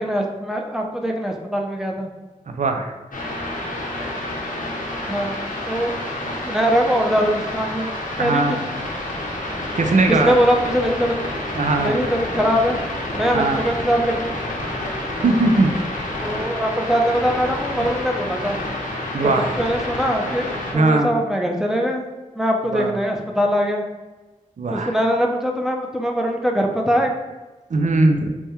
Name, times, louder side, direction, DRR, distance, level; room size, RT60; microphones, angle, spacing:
voice 1, 0.0-2.1 5.1-5.3 5.7-5.9 6.4-7.9 8.2-8.4 10.2-11.1 11.8-12.8 13.2-14.4 16.2-18.6 19.2-22.1 22.4-23.8 24.7-27.1, equal, 5° right, 1 dB, 0.6 m, -22 dB
voice 2, 2.5-2.9 8.2-8.6 9.8-10.3 11.5-11.9 13.3-13.6 15.2-15.7 19.1-19.6 20.7-21.1 22.7-22.9 24.6-24.9 27.7-28.3, right 2 dB, 65° right, 4 dB, 0.4 m, -19 dB
sound 1, 3.1-20.7, left 1 dB, 85° left, 0.7 m, -29 dB
3.4 x 2.2 x 4.2 m, 1.2 s
wide cardioid pair, 55°, 14 cm